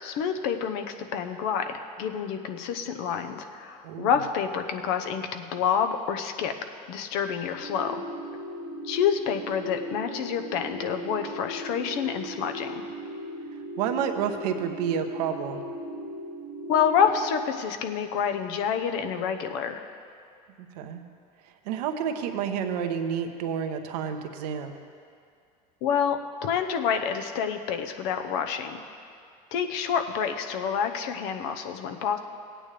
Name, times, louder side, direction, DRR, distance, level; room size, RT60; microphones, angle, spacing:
voice 1, 0.0-6.5 6.9-8.0 8.8-12.9 16.7-19.8 25.8-28.8 29.5-32.2, left 7 dB, 70° left, 7 dB, 0.9 m, -28 dB
sound 1, 7.6-17.5, equal, 5° right, 1.2 m, -38 dB
voice 2, 13.8-15.6 20.7-21.0 21.6-24.7, right 8 dB, 80° right, 6 dB, 0.9 m, -29 dB
17.0 x 8.9 x 3.4 m, 2.3 s
hypercardioid pair, 85°, 20 cm